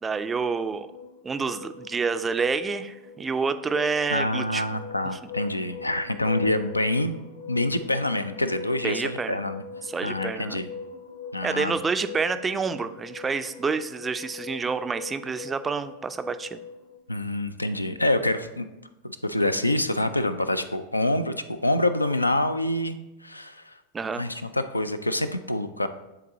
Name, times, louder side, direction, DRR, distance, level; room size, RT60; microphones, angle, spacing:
voice 1, 0.0-0.9 1.2-4.7 8.8-9.4 9.8-10.6 11.4-16.6 23.9-24.2, right 5 dB, 15° right, 10 dB, 0.4 m, -28 dB
sound 1, 0.5-17.0, left 5 dB, 70° left, 1.1 m, -41 dB
voice 2, 4.1-7.2 7.5-9.6 10.0-10.7 11.3-11.8 17.1-18.7 19.0-23.0 23.2-23.7 24.2-25.9, left 1 dB, 85° left, 11 dB, 0.3 m, -26 dB
9.8 x 3.9 x 2.7 m, 0.97 s
figure-of-eight pair, 90°, 0 cm